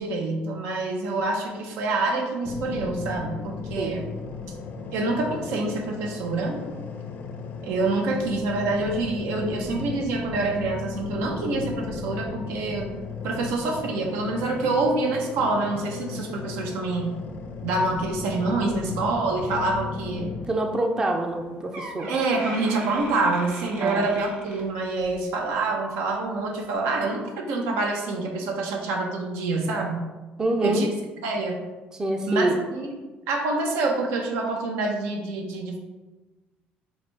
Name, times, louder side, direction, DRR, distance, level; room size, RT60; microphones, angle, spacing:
voice 1, 0.0-4.1 4.9-6.6 7.6-12.9 13.2-17.2 17.6-20.3 22.1-30.0 30.6-30.9 31.2-31.6 32.3-32.9 33.3-35.8, right 3 dB, 90° right, 2 dB, 0.8 m, -26 dB
sound 1, 2.4-20.5, left 5 dB, 50° left, 0.5 m, -35 dB
voice 2, 3.8-4.1 20.5-22.1 23.8-24.1 30.4-30.9 31.9-32.6, right 1 dB, 15° right, 3 dB, 0.4 m, -26 dB
Door, 21.3-21.4 21.7-25.2 25.6-25.9 26.6-26.7, right 1 dB, 65° right, 1.2 m, -40 dB
4.9 x 2.3 x 4.0 m, 1.2 s
cardioid pair, 140°, 4 cm